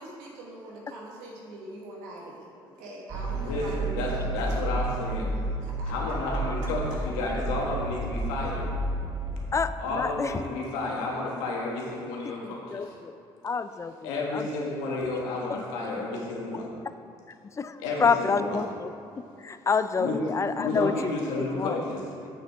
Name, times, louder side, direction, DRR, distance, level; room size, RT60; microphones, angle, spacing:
voice 1, 0.0-4.3 5.6-5.9, right 1 dB, 85° right, -2 dB, 1.5 m, -42 dB
sound 1, 3.1-9.8, right 2 dB, 35° right, 0.9 m, -31 dB
voice 2, 3.3-5.3 5.9-8.7 9.8-12.8 14.0-16.7 17.8-18.6 20.0-20.2 20.6-22.0, left 2 dB, 90° left, -3 dB, 1.4 m, -31 dB
voice 3, 6.3-6.6 9.5-10.4 12.5-13.2 13.4-14.6 14.9-15.6 17.5-21.9, left 5 dB, 25° left, 12 dB, 0.4 m, -29 dB
7.5 x 6.8 x 3.5 m, 2.5 s
supercardioid pair, 70°, 12 cm